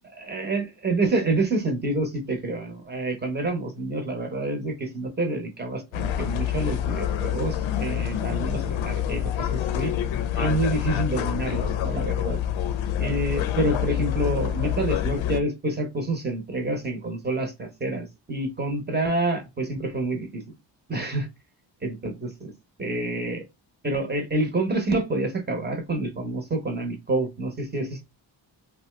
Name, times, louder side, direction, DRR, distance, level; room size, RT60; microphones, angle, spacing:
voice 1, 0.1-9.9 10.3-12.4 13.0-20.4 20.9-21.3 21.8-22.5 22.8-23.4 23.8-28.0, right 2 dB, 20° right, 5 dB, 0.8 m, -28 dB
sound 1, 5.9-15.4, left 10 dB, 80° left, 0.5 m, -27 dB
2.7 x 2.2 x 3.1 m, 0.22 s
wide cardioid pair, 115°, 46 cm